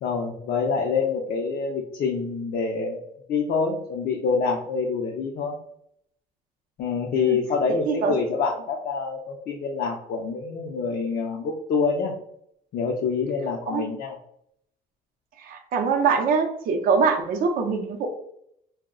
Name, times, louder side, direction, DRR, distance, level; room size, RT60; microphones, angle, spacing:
voice 1, 0.0-5.6 6.8-12.1 12.7-14.1, left 5 dB, 55° left, 0 dB, 0.5 m, -26 dB
voice 2, 7.7-8.1 13.7-13.8 15.4-18.1, right 5 dB, 55° right, 4 dB, 0.5 m, -23 dB
2.2 x 2.0 x 3.5 m, 0.71 s
cardioid pair, 110°, 17 cm